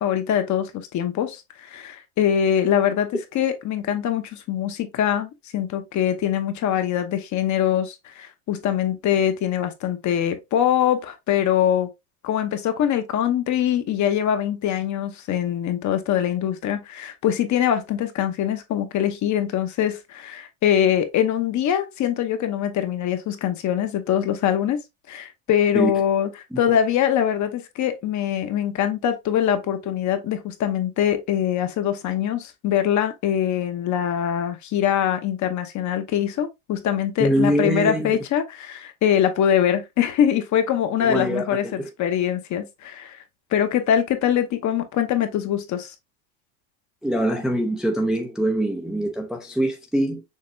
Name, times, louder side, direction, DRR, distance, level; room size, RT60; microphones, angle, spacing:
voice 1, 0.0-11.9 12.2-24.8 25.1-26.3 26.6-43.2 43.5-45.9, left 10 dB, 35° left, 1.0 m, -23 dB
voice 2, 37.2-38.2 41.0-41.9 47.0-50.2, right 1 dB, ahead, 0.6 m, -24 dB
6.5 x 2.9 x 2.7 m
supercardioid pair, 130°, 48 cm